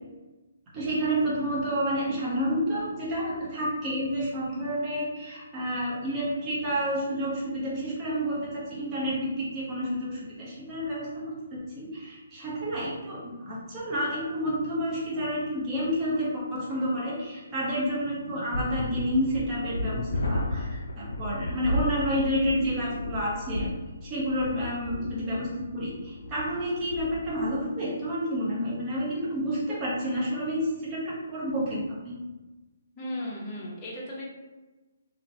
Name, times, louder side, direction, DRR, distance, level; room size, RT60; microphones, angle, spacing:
voice 1, 0.7-23.7 24.0-32.2, equal, 20° right, -7 dB, 0.7 m, -30 dB
sound 1, 18.5-27.6, left 1 dB, 75° left, 0.3 m, -33 dB
voice 2, 33.0-34.2, left 1 dB, 20° left, -6 dB, 0.8 m, -36 dB
2.8 x 2.1 x 2.6 m, 1.1 s
hypercardioid pair, 155°, 0 cm